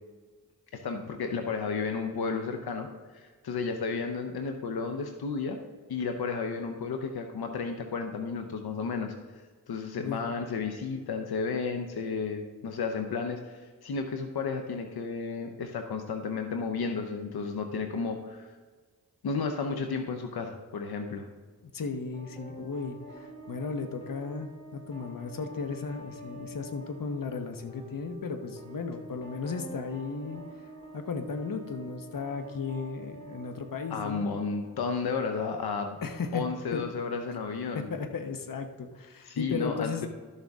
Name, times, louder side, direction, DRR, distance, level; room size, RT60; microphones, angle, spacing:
voice 1, 0.7-2.9 3.1-5.6 5.9-9.4 9.7-18.6 19.2-21.3 33.9-36.0 36.3-37.9 39.2-40.1, left 5 dB, 90° left, 5 dB, 0.7 m, -33 dB
voice 2, 21.6-30.4 30.9-34.3 36.0-36.4 36.7-36.8 37.7-40.0, left 4 dB, 65° left, 6 dB, 1.0 m, -35 dB
sound 1, 22.1-35.2, right 1 dB, 15° left, 2.3 m, -47 dB
12.5 x 6.6 x 3.5 m, 1.4 s
cardioid pair, 55°, 36 cm